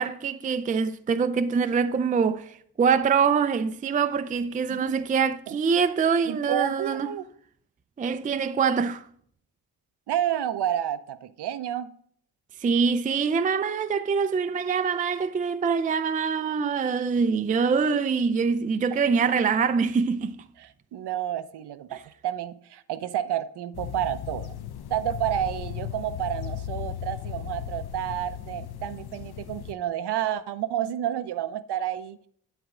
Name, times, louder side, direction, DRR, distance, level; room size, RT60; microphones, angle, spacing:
voice 1, 0.0-7.1 8.0-9.0 12.6-20.4, right 6 dB, 15° right, 0.4 m, -24 dB
voice 2, 4.7-5.0 5.5-5.6 6.3-7.3 10.1-11.9 20.6-24.6 24.9-32.3, right 11 dB, 55° right, 0.7 m, -30 dB
sound 1, 23.7-29.7, left 10 dB, 50° left, 0.8 m, -36 dB
8.7 x 8.1 x 3.8 m
hypercardioid pair, 50°, 50 cm